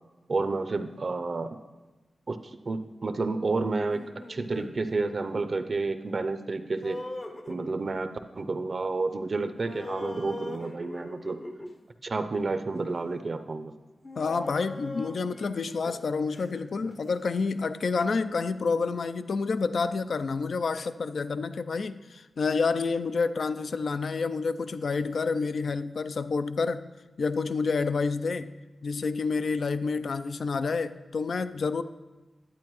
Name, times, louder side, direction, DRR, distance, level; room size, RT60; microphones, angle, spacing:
voice 1, 0.3-1.6 2.3-2.4 2.7-4.0 4.3-7.0 7.5-11.4 12.0-13.7, right 3 dB, 55° right, 0.5 m, -30 dB
sound 1, 3.9-4.7 6.8-8.0 9.6-11.8 12.9-13.0 14.0-17.0, left 2 dB, 35° left, 0.7 m, -41 dB
voice 2, 14.2-26.8 27.2-28.5 28.8-31.8, left 4 dB, 70° left, 0.3 m, -29 dB
10.5 x 8.3 x 3.1 m
cardioid pair, 65°, 0 cm